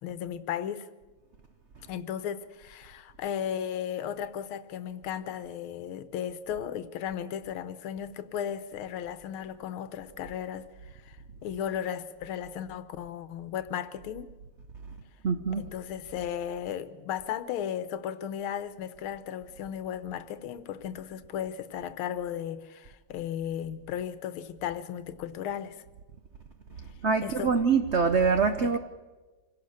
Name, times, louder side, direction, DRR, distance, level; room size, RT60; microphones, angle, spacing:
voice 1, 0.0-0.9 1.9-14.3 15.6-25.8 27.2-27.6 28.6-28.8, left 9 dB, 85° left, 1.7 m, -35 dB
voice 2, 15.2-15.6 27.0-28.8, right 5 dB, 70° right, 0.6 m, -24 dB
26.0 x 16.5 x 6.4 m
omnidirectional pair, 2.3 m